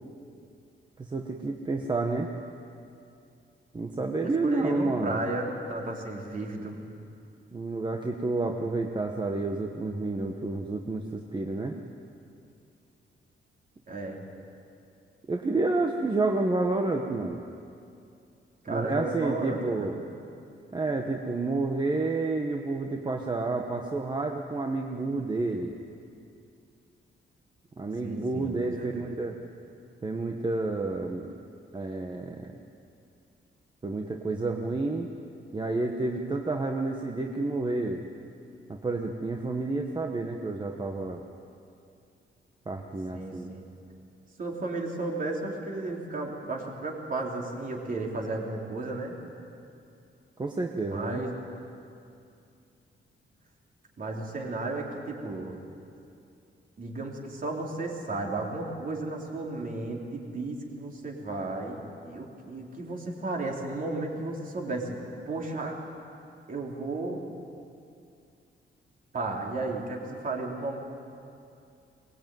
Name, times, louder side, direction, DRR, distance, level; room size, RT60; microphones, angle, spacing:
voice 1, 1.0-2.3 3.7-5.2 7.5-11.8 15.3-17.4 18.7-20.0 20.7-25.7 27.8-29.4 30.0-31.3 31.7-32.6 33.8-35.1 35.5-38.0 38.7-41.2 42.7-43.5 50.4-51.2, right 3 dB, 20° right, 2 dB, 1.2 m, -30 dB
voice 2, 4.2-6.8 13.9-14.2 18.6-19.9 28.0-29.1 43.1-43.6 44.4-49.1 50.9-51.3 54.0-55.6 56.8-65.0 65.3-65.8 66.5-67.2 69.1-70.8, right 2 dB, 40° right, 0 dB, 3.6 m, -34 dB
23.0 x 20.0 x 9.3 m, 2.5 s
wide cardioid pair, 160°, 20 cm